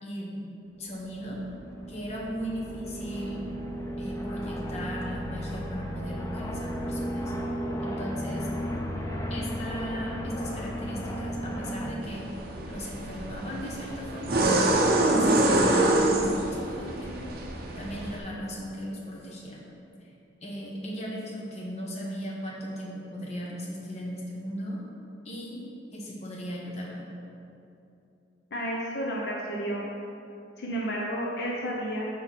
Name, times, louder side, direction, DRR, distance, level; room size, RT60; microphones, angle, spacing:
voice 1, 0.0-0.5 0.8-1.4 1.9-3.4 4.0-7.3 7.8-8.5 9.3-12.3 12.7-14.8 15.1-17.4 17.8-19.6 20.0-20.1 20.4-24.8 25.2-25.6 25.9-27.0, equal, 35° left, -4 dB, 1.0 m, -37 dB
sound 1, 0.9-11.9, equal, 15° left, 0.5 m, -34 dB
sound 2, 12.0-18.2, right 1 dB, 50° right, 0.6 m, -25 dB
voice 2, 28.5-29.8 30.6-32.0, equal, 60° left, -4 dB, 0.7 m, -31 dB
4.8 x 4.2 x 5.8 m, 2.8 s
head